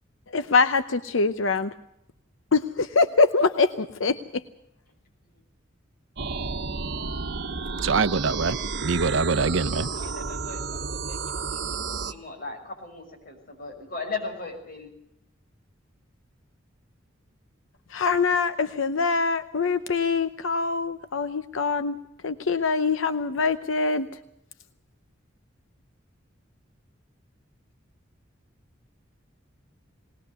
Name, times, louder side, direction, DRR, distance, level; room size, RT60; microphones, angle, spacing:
voice 1, 0.3-1.7 2.5-4.4 17.9-22.0 22.2-24.1, left 4 dB, 85° left, 11 dB, 0.7 m, -24 dB
sound 1, 6.2-12.1, right 4 dB, 60° right, 1.2 m, -31 dB
voice 2, 7.8-9.9, right 4 dB, 80° right, 13 dB, 0.7 m, -24 dB
voice 3, 9.9-14.9, left 4 dB, 50° left, 0 dB, 6.3 m, -38 dB
20.0 x 19.5 x 6.9 m, 0.78 s
head